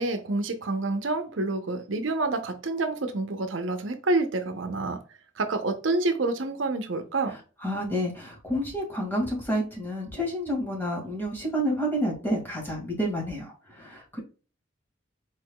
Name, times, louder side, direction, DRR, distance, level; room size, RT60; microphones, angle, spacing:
voice 1, 0.0-5.0 5.4-7.3, right 2 dB, 80° right, 0.7 m, -28 dB
voice 2, 7.6-14.2, equal, 10° left, 1.9 m, -29 dB
4.7 x 4.5 x 2.2 m
head